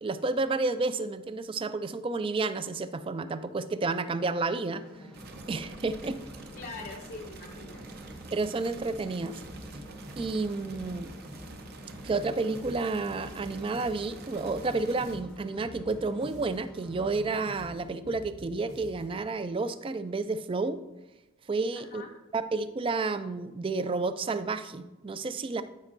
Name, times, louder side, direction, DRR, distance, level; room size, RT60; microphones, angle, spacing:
voice 1, 0.0-4.8 5.5-6.2 8.3-9.4 10.2-11.1 12.0-20.8 21.5-22.0 22.3-25.6, right 3 dB, 25° right, 12 dB, 0.3 m, -31 dB
sound 1, 4.7-17.6, equal, 5° left, 0.7 m, -48 dB
sound 2, 5.1-15.2, right 3 dB, 50° right, 0.7 m, -48 dB
voice 2, 6.5-7.9 21.7-22.2, left 3 dB, 45° left, -2 dB, 0.6 m, -43 dB
sound 3, 9.4-19.3, equal, 85° right, 1.6 m, -48 dB
12.0 x 5.3 x 2.6 m, 1.0 s
head